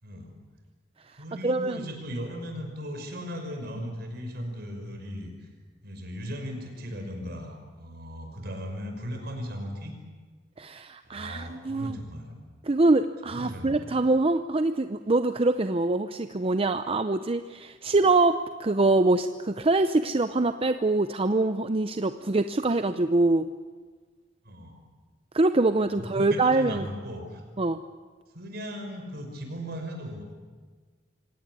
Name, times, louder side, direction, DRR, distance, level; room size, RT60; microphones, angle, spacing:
voice 1, 0.0-0.3 1.1-5.5 5.8-9.9 11.0-12.4 13.3-13.9 17.9-18.0 24.4-24.8 25.9-27.4 28.3-30.2, equal, 60° right, 4 dB, 5.7 m, -37 dB
voice 2, 1.4-1.9 10.6-12.0 12.6-23.5 25.3-26.8 27.6-27.8, right 2 dB, 30° right, 9 dB, 0.7 m, -24 dB
25.5 x 17.5 x 9.7 m, 1.5 s
head